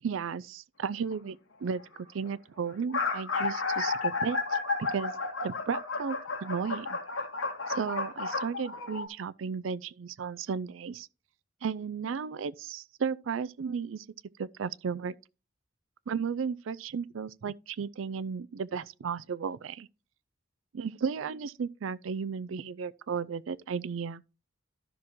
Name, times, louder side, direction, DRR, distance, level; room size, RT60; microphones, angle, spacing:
voice 1, 0.0-1.8 2.1-5.1 5.4-7.0 7.7-11.1 11.6-14.1 14.4-15.1 16.1-19.9 20.7-24.2, right 6 dB, 80° right, 0.4 m, -34 dB
sound 1, 0.8-1.1 2.0-2.1 2.3-2.4 2.7-9.1, left 4 dB, 85° left, 2.0 m, -32 dB
12.5 x 6.0 x 3.0 m
head